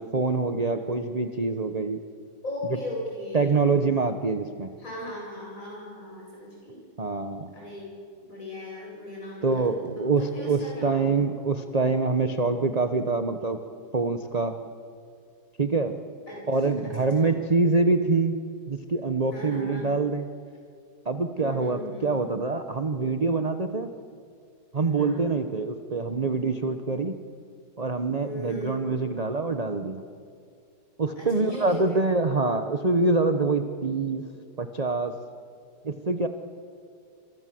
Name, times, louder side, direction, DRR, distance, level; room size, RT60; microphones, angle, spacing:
voice 1, 0.0-2.0 3.3-4.7 7.0-7.5 9.4-13.6 13.9-14.6 15.6-15.9 16.5-18.3 18.7-20.2 21.0-23.9 24.7-27.2 27.8-30.1 31.0-34.3 34.6-35.1 35.8-36.3, right 3 dB, 30° right, 7 dB, 0.9 m, -25 dB
voice 2, 2.4-3.5 4.8-6.8 7.5-9.8 10.2-11.1 16.3-16.4 16.8-17.4 19.3-19.9 21.4-22.2 24.8-25.3 28.2-28.8 31.2-32.1, left 1 dB, 45° left, -3 dB, 8.4 m, -38 dB
27.0 x 26.5 x 7.8 m, 2.3 s
omnidirectional pair, 1.9 m